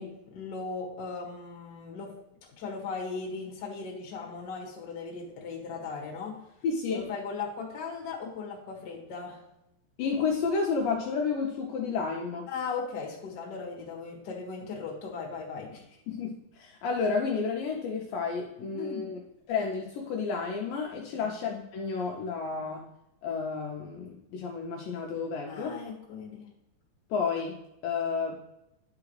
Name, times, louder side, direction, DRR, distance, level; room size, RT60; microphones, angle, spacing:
voice 1, 0.0-2.1 2.6-6.4 6.9-9.4 12.5-15.7 18.7-19.1 21.1-21.3 25.4-26.5, left 5 dB, 45° left, -2 dB, 1.4 m, -38 dB
voice 2, 6.6-7.0 10.0-12.5 16.1-19.2 19.5-22.9 23.2-25.8 27.1-27.5 27.8-28.4, left 5 dB, 80° left, 0 dB, 2.1 m, -31 dB
10.5 x 4.7 x 3.2 m, 0.85 s
omnidirectional pair, 4.6 m